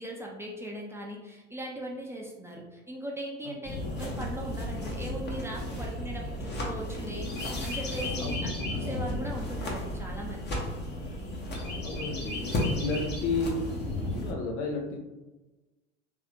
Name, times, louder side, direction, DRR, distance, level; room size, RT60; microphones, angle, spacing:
voice 1, 0.0-7.3 7.6-8.4 8.7-10.6, right 1 dB, 5° right, -2 dB, 0.7 m, -39 dB
sound 1, 3.6-14.3, left 1 dB, 30° left, 1.1 m, -33 dB
voice 2, 11.8-12.5 12.8-13.6 14.0-15.0, left 3 dB, 65° left, 2 dB, 0.9 m, -32 dB
3.5 x 3.3 x 2.9 m, 1.1 s
hypercardioid pair, 75°, 36 cm